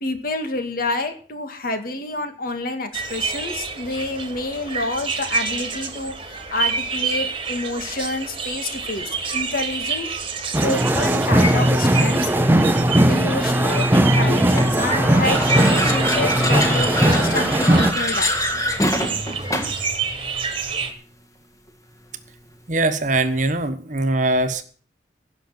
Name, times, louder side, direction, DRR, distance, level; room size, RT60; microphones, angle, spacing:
voice 1, 0.0-10.1 10.6-18.3, left 2 dB, 55° left, 7 dB, 2.1 m, -28 dB
sound 1, 2.9-20.9, right 4 dB, 30° right, 1.8 m, -28 dB
sound 2, 10.5-17.9, right 1 dB, 10° right, 0.8 m, -18 dB
sound 3, 14.5-19.9, left 1 dB, 20° left, 2.0 m, -25 dB
voice 2, 22.7-24.6, right 2 dB, 45° right, 9 dB, 1.2 m, -21 dB
16.5 x 6.4 x 7.7 m, 0.43 s
head